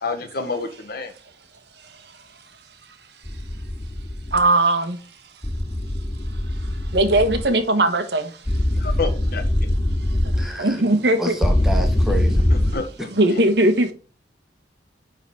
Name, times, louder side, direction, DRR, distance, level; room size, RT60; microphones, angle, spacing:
voice 1, 0.0-1.1 8.7-9.4 12.7-13.4, left 4 dB, 60° left, 1.5 m, -29 dB
sound 1, 3.3-4.4 5.4-7.5 8.5-10.5 11.4-12.7, left 1 dB, 15° left, 0.6 m, -22 dB
voice 2, 4.3-5.0 6.9-8.3 10.6-11.3 12.1-12.2 13.1-13.9, right 2 dB, 65° right, 1.3 m, -19 dB
voice 3, 10.3-10.8 11.2-12.5, right 1 dB, ahead, 1.5 m, -29 dB
9.8 x 4.0 x 4.2 m
head